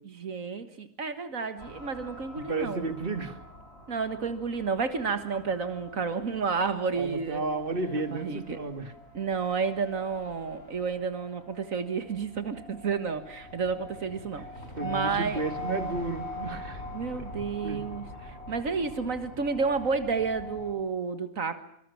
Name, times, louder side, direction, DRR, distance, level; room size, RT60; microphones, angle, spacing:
voice 1, 0.2-2.8 3.9-7.4 8.1-8.6 9.1-14.4 14.8-15.4 16.9-18.1 18.5-21.6, right 5 dB, 75° right, 11 dB, 2.0 m, -31 dB
sound 1, 1.6-20.7, left 2 dB, 50° left, 5.8 m, -44 dB
voice 2, 2.5-3.4 6.9-8.9 14.4-14.5 14.8-16.8 17.1-17.8 18.2-18.3, right 3 dB, 40° right, 9 dB, 2.4 m, -33 dB
25.5 x 24.5 x 7.1 m, 0.73 s
omnidirectional pair, 1.4 m